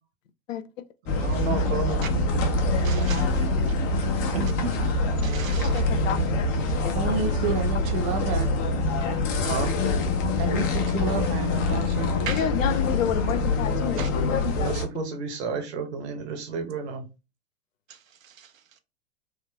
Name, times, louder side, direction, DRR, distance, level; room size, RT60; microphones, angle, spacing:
sound 1, 1.1-14.8, left 2 dB, 30° left, 0.6 m, -25 dB
voice 1, 1.1-2.3 9.4-9.8 14.6-17.1, right 5 dB, 55° right, 1.0 m, -32 dB
voice 2, 2.8-3.7 4.4-4.5 5.2-5.8 9.4-9.6 12.3-12.5 14.0-14.1 17.9-18.8, right 8 dB, 75° right, 0.6 m, -39 dB
voice 3, 4.3-4.8 6.9-8.5 10.4-12.2, right 6 dB, 30° right, 0.4 m, -30 dB
voice 4, 5.6-6.4 6.8-7.2 12.3-14.0 14.3-14.7, left 8 dB, 70° left, 0.5 m, -29 dB
3.6 x 2.5 x 2.3 m
figure-of-eight pair, 90°, 41 cm